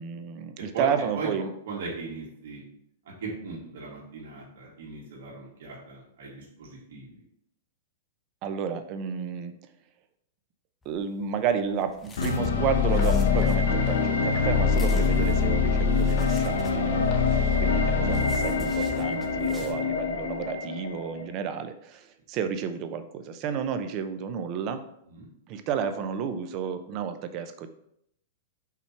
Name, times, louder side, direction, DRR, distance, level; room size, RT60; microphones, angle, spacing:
voice 1, 0.0-1.5 8.4-9.6 10.8-17.1 17.6-24.8 25.5-27.7, right 7 dB, 30° right, 9 dB, 0.6 m, -31 dB
voice 2, 1.7-2.6 3.0-7.1 14.9-15.0 21.1-21.3 25.1-25.3, right 4 dB, 70° right, -4 dB, 2.4 m, -38 dB
sound 1, 10.8-19.7, left 4 dB, 10° left, 0.8 m, -43 dB
sound 2, 12.2-21.2, left 5 dB, 80° left, 0.9 m, -24 dB
sound 3, 12.7-18.2, left 4 dB, 30° left, 1.2 m, -44 dB
5.8 x 4.3 x 4.6 m, 0.73 s
supercardioid pair, 165°, 0 cm